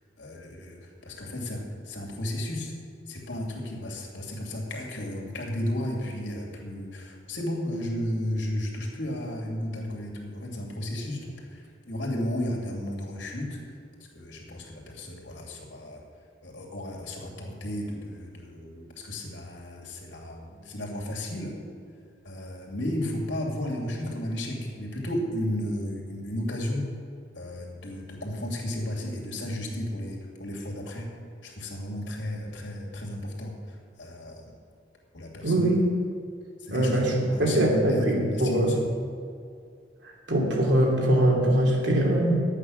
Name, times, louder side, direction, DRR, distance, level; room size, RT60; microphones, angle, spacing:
voice 1, 0.2-2.7 3.1-13.6 14.1-16.0 16.4-21.5 22.2-26.9 27.3-31.1 31.4-34.4 35.1-35.6 36.6-38.8, left 1 dB, 75° left, -1 dB, 2.6 m, -33 dB
voice 2, 35.4-35.8 36.7-37.1 37.4-38.8 40.3-42.4, right 1 dB, 70° right, -2 dB, 2.7 m, -22 dB
11.5 x 8.6 x 6.3 m, 2.3 s
head